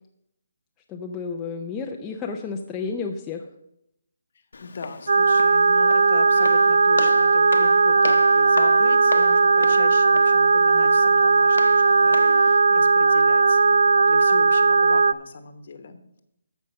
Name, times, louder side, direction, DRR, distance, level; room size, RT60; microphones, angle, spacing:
voice 1, 0.9-3.5, left 5 dB, 10° left, 1 dB, 0.5 m, -31 dB
Walk footsteps, 4.5-12.5, left 3 dB, 75° left, 1.0 m, -35 dB
voice 2, 4.6-16.2, left 4 dB, 40° left, 10 dB, 1.1 m, -37 dB
sound 1, 5.1-15.1, right 4 dB, 70° right, 0.3 m, -17 dB
14.0 x 5.4 x 5.5 m, 0.80 s
hypercardioid pair, 175°, 0 cm